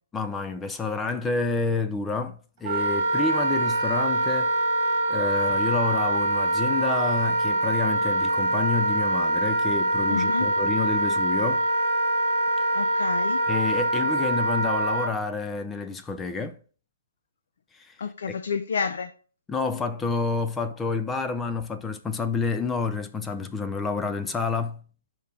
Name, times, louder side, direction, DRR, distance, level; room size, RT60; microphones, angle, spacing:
voice 1, 0.1-4.6 5.1-11.7 12.6-12.8 13.5-16.6 17.7-17.9 18.3-18.4 19.5-24.8, left 4 dB, 10° left, 0.3 m, -29 dB
Wind instrument woodwind instrument, 2.6-15.1, right 1 dB, 30° right, 1.8 m, -24 dB
voice 2, 10.1-10.5 12.7-13.4 18.0-19.1, left 5 dB, 60° left, 0.5 m, -29 dB
6.8 x 4.5 x 3.5 m
hypercardioid pair, 165°, 0 cm